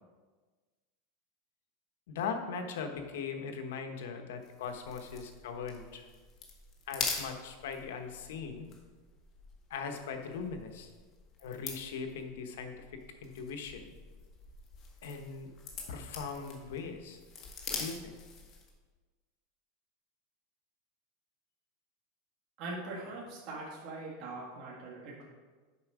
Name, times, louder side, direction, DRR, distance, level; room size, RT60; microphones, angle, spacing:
voice 1, 2.1-6.1 6.9-8.7 9.7-10.9 11.4-13.9 15.0-15.5 15.9-17.2 17.7-18.2, left 5 dB, 80° left, 6 dB, 1.0 m, -40 dB
sound 1, 4.4-18.8, left 5 dB, 35° left, 1.3 m, -44 dB
voice 2, 22.6-25.2, right 2 dB, 45° right, -4 dB, 1.7 m, -42 dB
7.2 x 4.9 x 4.8 m, 1.3 s
supercardioid pair, 145°, 0 cm